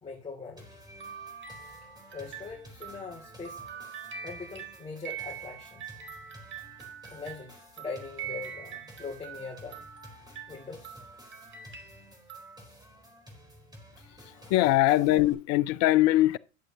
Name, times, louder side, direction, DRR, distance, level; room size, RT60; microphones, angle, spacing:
voice 1, 0.0-0.7 2.1-3.6 3.9-4.0 4.2-6.0 7.1-9.9 10.5-11.0 14.3-14.5 14.9-15.0, left 4 dB, 15° left, 2.8 m, -42 dB
sound 1, 0.6-15.3, equal, 10° right, 4.1 m, -53 dB
sound 2, 0.9-12.6, right 8 dB, 30° right, 2.1 m, -44 dB
voice 2, 14.5-16.4, left 16 dB, 40° left, 0.6 m, -22 dB
11.5 x 7.7 x 2.9 m
hypercardioid pair, 90°, 40 cm